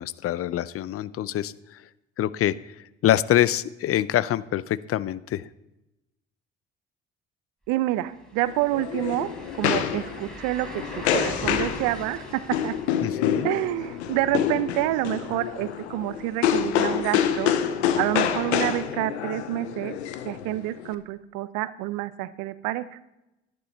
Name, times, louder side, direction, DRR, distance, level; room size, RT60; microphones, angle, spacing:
voice 1, 0.0-1.8 2.2-2.8 3.0-5.5 13.0-13.5, left 12 dB, 45° left, 18 dB, 0.6 m, -25 dB
sound 1, 7.6-7.7 8.1-17.8 18.2-18.3 21.1-21.2, equal, ahead, 4.3 m, -43 dB
voice 2, 7.7-12.7 13.4-17.6 18.0-20.0 20.3-22.8, right 16 dB, 70° right, 15 dB, 0.7 m, -28 dB
sound 2, 8.5-20.9, left 9 dB, 85° left, 0.8 m, -27 dB
11.5 x 11.5 x 4.1 m, 0.94 s
hypercardioid pair, 55°, 32 cm